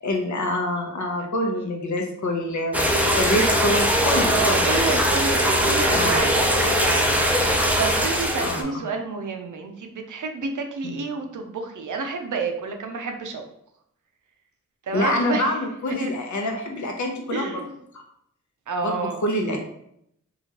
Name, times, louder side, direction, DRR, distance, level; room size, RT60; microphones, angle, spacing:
voice 1, 0.0-5.0 5.9-6.3 8.4-8.8 10.8-11.0 14.9-17.5 17.9-18.0 18.8-19.6, left 1 dB, 60° left, 2 dB, 0.7 m, -26 dB
sound 1, 2.7-8.6, equal, 5° right, 0.5 m, -21 dB
voice 2, 4.3-13.4 14.8-15.5 16.0-16.1 17.3-17.7 18.7-19.2, right 4 dB, 70° right, 4 dB, 0.6 m, -29 dB
2.9 x 2.3 x 2.9 m, 0.73 s
cardioid pair, 45°, 32 cm